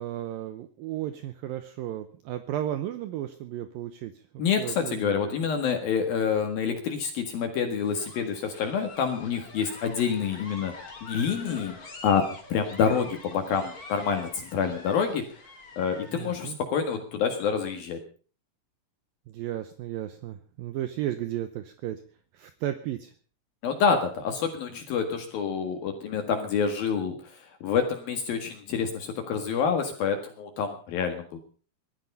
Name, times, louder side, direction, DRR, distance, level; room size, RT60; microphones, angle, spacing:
voice 1, 0.0-5.3 16.1-16.6 19.3-22.0 22.3-23.1, right 12 dB, 75° right, 10 dB, 2.2 m, -34 dB
voice 2, 4.4-10.7 11.0-11.8 12.0-12.2 12.5-15.4 15.8-18.0 23.6-31.4, left 6 dB, 60° left, 5 dB, 3.3 m, -27 dB
sound 1, 7.8-16.4, left 3 dB, 25° left, 3.0 m, -45 dB
18.0 x 13.5 x 5.5 m, 0.40 s
omnidirectional pair, 5.1 m